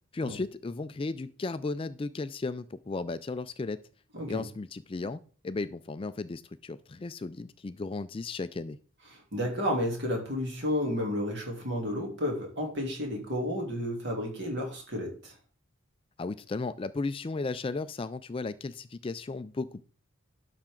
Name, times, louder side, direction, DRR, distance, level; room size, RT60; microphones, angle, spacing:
voice 1, 0.1-3.8 4.3-5.2 5.4-8.8 16.2-19.8, left 3 dB, 25° left, 14 dB, 0.3 m, -35 dB
voice 2, 9.1-15.3, left 1 dB, 55° right, 0 dB, 3.1 m, -32 dB
11.5 x 5.9 x 3.8 m, 0.41 s
head